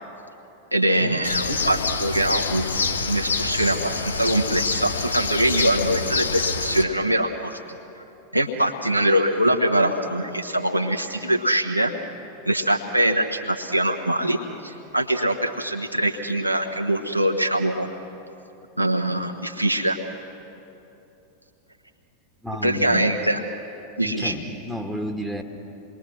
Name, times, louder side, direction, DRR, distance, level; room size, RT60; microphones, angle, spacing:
voice 1, 0.7-2.7 3.1-8.0 8.3-11.9 12.4-17.9 18.8-20.0 22.6-23.4 24.0-24.3, right 1 dB, 90° right, 2 dB, 1.3 m, -23 dB
Bird, 1.2-6.8, left 4 dB, 70° left, 1.1 m, -26 dB
voice 2, 22.4-23.1 24.0-25.4, equal, 5° right, 5 dB, 1.7 m, -31 dB
27.5 x 21.5 x 6.3 m, 2.9 s
figure-of-eight pair, 90°, 0 cm